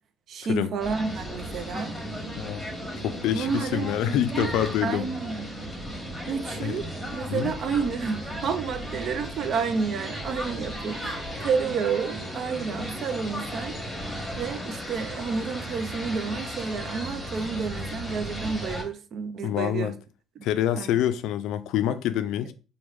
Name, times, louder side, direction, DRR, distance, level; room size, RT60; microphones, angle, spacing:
voice 1, 0.3-2.0 3.3-4.5 4.8-5.5 6.3-6.8 7.1-13.8 14.4-19.9 20.4-20.5 20.7-20.9, right 5 dB, 55° right, 0.4 m, -30 dB
sound 1, 0.8-18.8, equal, 5° left, 1.2 m, -35 dB
voice 2, 3.0-5.0 6.6-6.8 7.3-7.5 19.4-20.0 20.4-22.5, left 11 dB, 80° left, 0.3 m, -26 dB
3.1 x 2.2 x 3.5 m
cardioid pair, 100°, 0 cm